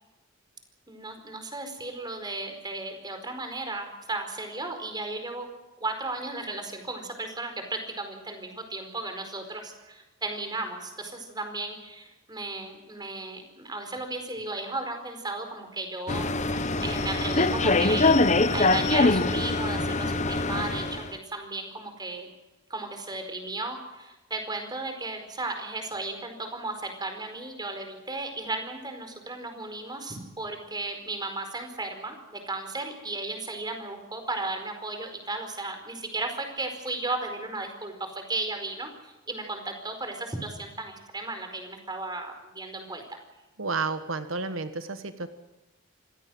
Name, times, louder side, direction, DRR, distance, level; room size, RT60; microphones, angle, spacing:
voice 1, 0.9-5.5 5.8-22.3 22.7-43.0, right 2 dB, 20° right, 5 dB, 4.6 m, -35 dB
sound 1, 16.1-21.1, left 2 dB, 35° left, 1.0 m, -23 dB
voice 2, 43.6-45.3, right 4 dB, 90° right, 9 dB, 1.4 m, -31 dB
26.0 x 16.5 x 7.8 m, 1.1 s
head